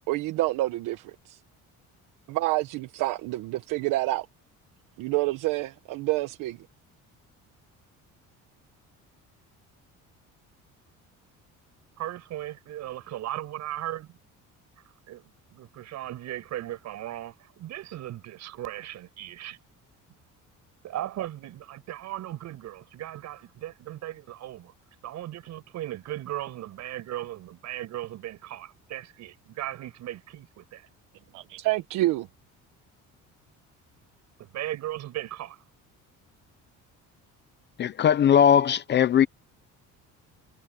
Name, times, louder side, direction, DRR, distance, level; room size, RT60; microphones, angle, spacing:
voice 1, 0.1-1.4 2.3-4.3 5.0-6.6 31.3-32.3, right 18 dB, 85° right, 1.1 m, -28 dB
voice 2, 12.0-14.2 15.1-19.6 20.8-24.7 25.0-30.9 34.4-35.5, right 13 dB, 60° right, 7.8 m, -37 dB
voice 3, 37.8-39.3, left 8 dB, 35° left, 0.6 m, -19 dB
cardioid pair, 165°, 31 cm